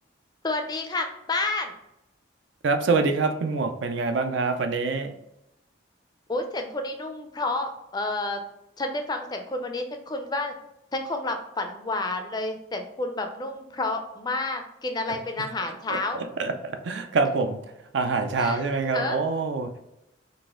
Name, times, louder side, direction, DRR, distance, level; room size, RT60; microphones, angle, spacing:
voice 1, 0.4-1.7 6.3-8.4 8.8-10.5 10.9-16.2 18.4-18.6 18.9-19.2, left 2 dB, 20° left, 5 dB, 0.4 m, -30 dB
voice 2, 2.6-5.1 15.9-17.6 17.9-19.7, right 4 dB, 70° right, 7 dB, 0.5 m, -25 dB
4.0 x 2.5 x 3.6 m, 0.86 s
head